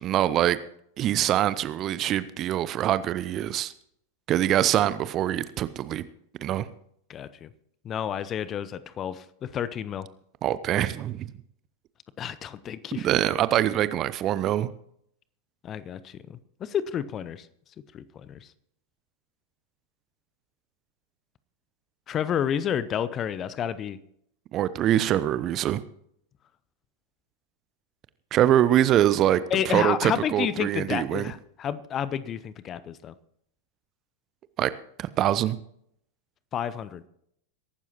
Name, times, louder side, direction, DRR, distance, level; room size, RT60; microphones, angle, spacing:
voice 1, 0.0-0.6 1.0-3.7 4.3-6.0 6.4-6.7 10.4-11.3 12.9-14.7 24.5-25.8 28.3-31.3 34.6-34.7 35.0-35.6, right 12 dB, 35° right, 16 dB, 0.7 m, -24 dB
voice 2, 7.1-7.5 7.8-10.1 12.2-13.1 15.6-17.5 17.9-18.5 22.1-24.0 29.5-33.1 36.5-37.0, left 9 dB, 30° left, 16 dB, 0.7 m, -30 dB
22.5 x 12.0 x 3.0 m, 0.70 s
figure-of-eight pair, 90°, 0 cm